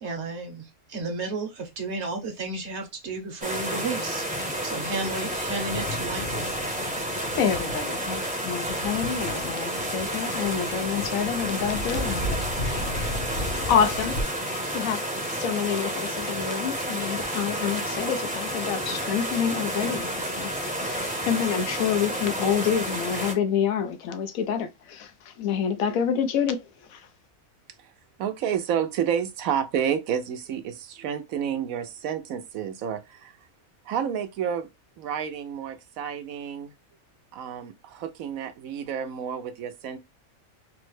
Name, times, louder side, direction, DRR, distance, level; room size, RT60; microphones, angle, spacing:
voice 1, 0.0-6.5, right 3 dB, 60° right, 1.1 m, -33 dB
sound 1, 3.4-23.3, right 1 dB, 10° right, 0.5 m, -30 dB
Thunder, 4.5-14.2, left 1 dB, 55° left, 0.8 m, -35 dB
voice 2, 7.4-13.1 13.7-14.1 14.7-15.0 15.3-20.5 20.8-27.1, left 8 dB, 90° left, 1.1 m, -28 dB
voice 3, 28.2-33.3 33.9-34.7 35.0-36.7 37.3-40.0, right 8 dB, 80° right, 1.0 m, -30 dB
3.4 x 2.1 x 3.1 m
omnidirectional pair, 1.4 m